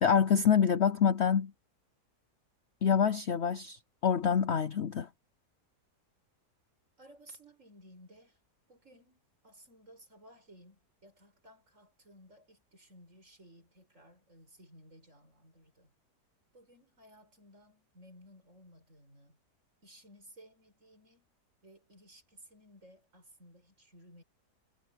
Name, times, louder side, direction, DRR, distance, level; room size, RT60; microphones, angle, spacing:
voice 1, 0.0-1.5 2.8-5.1, left 7 dB, 55° left, 0.8 m, -26 dB
voice 2, 7.0-8.4 8.7-15.9 16.5-19.4 19.8-21.3 21.6-24.2, equal, 50° right, 7.4 m, -57 dB
omnidirectional pair, 1.7 m